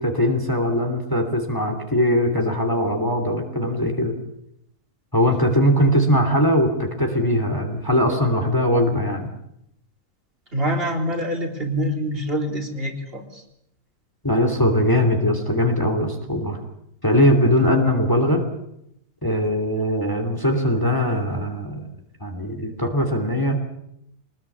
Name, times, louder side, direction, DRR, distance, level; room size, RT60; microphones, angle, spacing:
voice 1, 0.0-4.1 5.1-9.3 14.2-16.6 17.0-18.4 19.2-21.8 22.2-23.6, equal, 15° left, 4 dB, 2.9 m, -20 dB
voice 2, 10.5-13.4, equal, 40° right, 2 dB, 3.9 m, -25 dB
24.5 x 20.0 x 8.6 m, 0.78 s
omnidirectional pair, 1.6 m